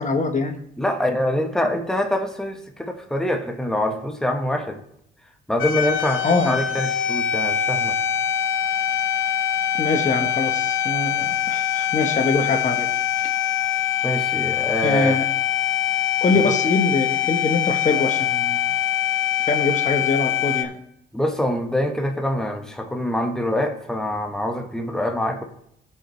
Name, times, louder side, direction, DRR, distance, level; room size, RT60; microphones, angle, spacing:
voice 1, 0.0-0.6 6.2-6.6 9.8-12.9 14.8-15.2 16.2-18.7 19.5-20.7, left 3 dB, 40° left, 5 dB, 1.2 m, -23 dB
voice 2, 0.8-4.8 5.5-8.0 14.0-15.2 16.3-16.5 21.1-25.4, left 1 dB, 5° left, 3 dB, 1.2 m, -25 dB
sound 1, 5.6-20.6, left 10 dB, 85° left, 0.8 m, -23 dB
14.5 x 5.5 x 3.1 m, 0.72 s
cardioid pair, 90°, 20 cm